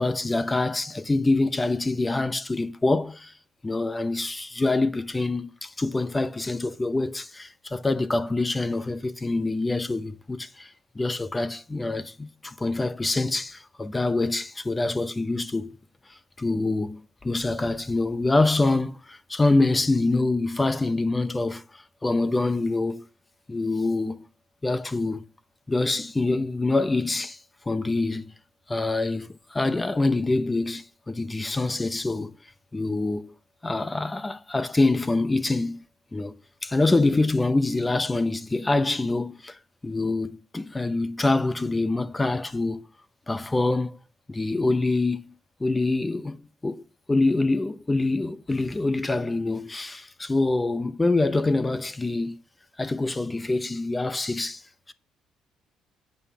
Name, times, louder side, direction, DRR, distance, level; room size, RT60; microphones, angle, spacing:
voice 1, 0.0-3.3 3.6-15.8 16.4-23.0 23.5-24.2 24.6-25.2 25.7-27.4 27.7-28.3 28.7-32.3 32.7-33.3 33.6-35.8 36.1-39.6 39.8-42.9 43.3-44.0 44.3-45.3 45.6-46.8 47.1-52.4 52.8-54.6, left 2 dB, 15° left, 0.8 m, -25 dB
9.3 x 5.3 x 7.0 m
cardioid pair, 140°, 0 cm